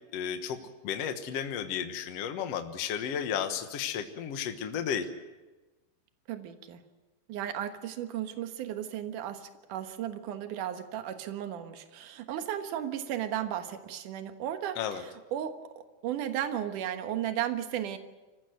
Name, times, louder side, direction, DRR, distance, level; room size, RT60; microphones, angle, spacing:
voice 1, 0.1-0.6 0.8-5.1 14.8-15.0, left 8 dB, 70° left, 7 dB, 1.5 m, -33 dB
voice 2, 6.3-6.8 7.3-18.0, right 10 dB, 60° right, 7 dB, 2.5 m, -35 dB
27.0 x 15.0 x 7.9 m, 1.2 s
omnidirectional pair, 4.7 m